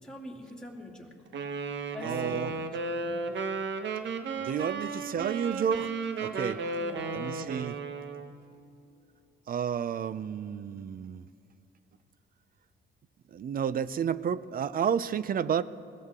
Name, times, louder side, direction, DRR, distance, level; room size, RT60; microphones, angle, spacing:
voice 1, 0.0-1.1 1.9-2.7 3.0-3.3 6.8-7.2, equal, 5° left, -3 dB, 2.7 m, -45 dB
Wind instrument woodwind instrument, 1.3-8.3, right 3 dB, 65° right, 1.1 m, -34 dB
voice 2, 2.0-2.5 4.4-5.9 6.2-6.6 7.1-7.8 9.5-11.3 13.3-15.6, right 8 dB, 45° right, 17 dB, 0.5 m, -31 dB
21.0 x 17.0 x 3.7 m, 2.5 s
cardioid pair, 90°, 20 cm